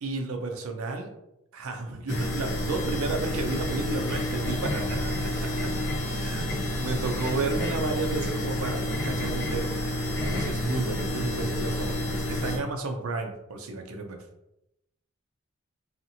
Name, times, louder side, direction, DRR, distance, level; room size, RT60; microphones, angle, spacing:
voice 1, 0.0-1.1 1.5-5.7 6.0-6.5 6.8-9.7 10.2-14.2, right 3 dB, 75° right, 4 dB, 0.5 m, -32 dB
sound 1, 2.1-12.6, left 1 dB, 50° left, 0.6 m, -29 dB
2.7 x 2.5 x 2.7 m, 0.86 s
head